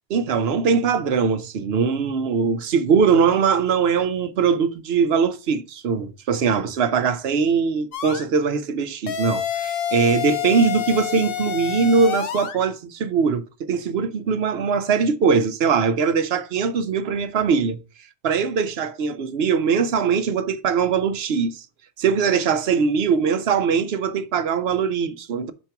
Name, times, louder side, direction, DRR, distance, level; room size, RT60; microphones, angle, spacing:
voice 1, 0.1-17.8 18.2-21.6 22.0-25.5, right 5 dB, 75° right, 1.0 m, -21 dB
sound 1, 7.9-8.2 9.1-12.6, left 9 dB, 65° left, 0.9 m, -27 dB
5.8 x 4.4 x 5.7 m
omnidirectional pair, 1.1 m